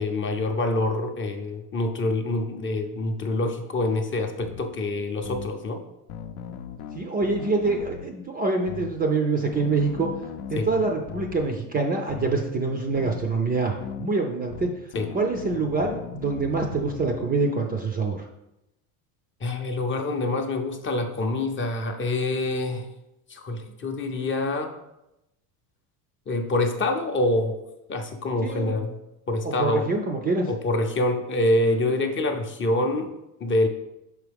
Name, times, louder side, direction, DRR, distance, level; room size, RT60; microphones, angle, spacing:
voice 1, 0.0-5.8 10.6-10.7 14.9-15.1 19.4-22.9 23.3-24.7 26.3-27.6 27.9-29.0 29.3-29.9 30.5-33.1 33.4-33.7, left 2 dB, 25° left, 4 dB, 0.6 m, -26 dB
sound 1, 4.4-4.6 5.2-5.5 6.1-8.1 8.7-8.9 9.5-11.5 12.1-12.4 13.0-13.2 13.8-14.1 14.5-17.3, left 8 dB, 70° left, 0.6 m, -38 dB
voice 2, 6.9-10.1 10.5-14.7 15.1-18.3 28.4-28.8 29.4-30.5, right 3 dB, 20° right, 3 dB, 0.4 m, -25 dB
6.0 x 4.8 x 3.5 m, 0.91 s
supercardioid pair, 110°, 47 cm